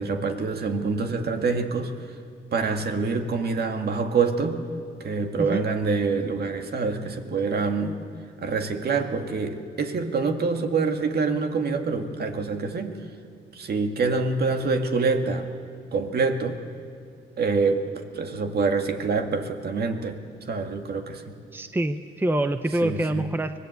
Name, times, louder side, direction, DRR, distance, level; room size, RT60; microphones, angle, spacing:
voice 1, 0.0-1.9 2.5-4.6 5.0-8.0 8.4-13.0 13.5-15.5 15.9-16.6 17.4-17.9 18.2-20.2 20.5-21.3 22.8-23.2, right 4 dB, 55° right, 5 dB, 2.0 m, -26 dB
voice 2, 21.5-23.6, right 1 dB, 10° right, 9 dB, 0.8 m, -26 dB
24.5 x 18.5 x 8.2 m, 2.3 s
cardioid pair, 90°, 20 cm